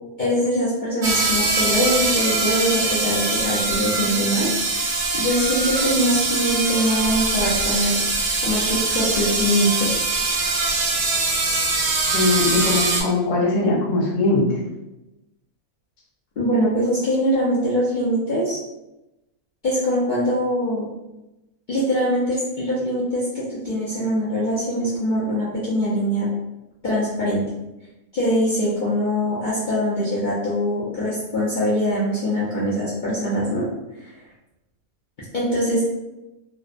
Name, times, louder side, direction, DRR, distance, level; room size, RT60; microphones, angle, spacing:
voice 1, 0.2-4.5 5.1-7.9 8.4-10.0 16.4-18.6 19.6-20.9 21.7-26.3 26.8-27.4 28.1-33.6 35.3-35.8, equal, 85° left, -9 dB, 0.4 m, -22 dB
sound 1, 1.0-13.0, right 3 dB, 65° right, 0.7 m, -22 dB
voice 2, 12.1-14.6, left 2 dB, 55° left, -4 dB, 0.9 m, -20 dB
2.6 x 2.0 x 2.4 m, 0.98 s
omnidirectional pair, 1.6 m